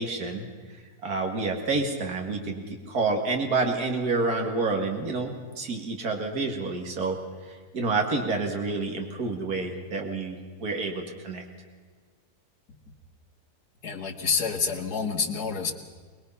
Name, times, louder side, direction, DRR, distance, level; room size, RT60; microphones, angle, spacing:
voice 1, 0.0-11.5, right 3 dB, 75° right, 2 dB, 2.6 m, -29 dB
voice 2, 13.8-15.7, left 5 dB, 85° left, 4 dB, 2.3 m, -28 dB
24.0 x 20.5 x 5.7 m, 1.5 s
omnidirectional pair, 1.6 m